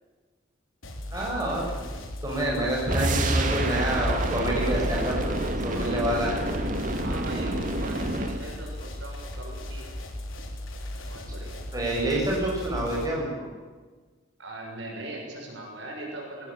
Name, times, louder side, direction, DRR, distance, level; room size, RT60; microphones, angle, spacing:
sound 1, 0.8-13.1, left 1 dB, 80° left, 3.9 m, -37 dB
voice 1, 1.1-1.8 2.2-5.2 5.6-6.4 11.7-13.5, right 1 dB, 15° right, -3 dB, 6.7 m, -28 dB
sound 2, 2.9-8.5, right 1 dB, 40° right, 2.4 m, -28 dB
voice 2, 7.0-9.8 11.0-11.5 14.4-16.5, right 2 dB, 65° right, 0 dB, 6.7 m, -40 dB
20.5 x 19.0 x 8.7 m, 1.4 s
head